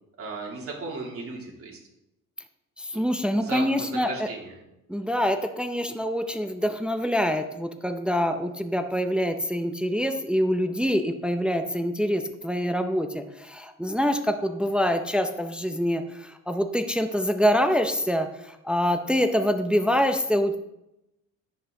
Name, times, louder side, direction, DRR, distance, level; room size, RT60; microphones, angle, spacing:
voice 1, 0.2-1.8 2.9-3.1 3.4-4.5, right 3 dB, 45° right, -2 dB, 2.9 m, -36 dB
voice 2, 2.8-4.3 4.9-20.6, equal, 5° right, 7 dB, 0.6 m, -25 dB
10.0 x 8.0 x 3.8 m, 0.88 s
cardioid pair, 130°, 32 cm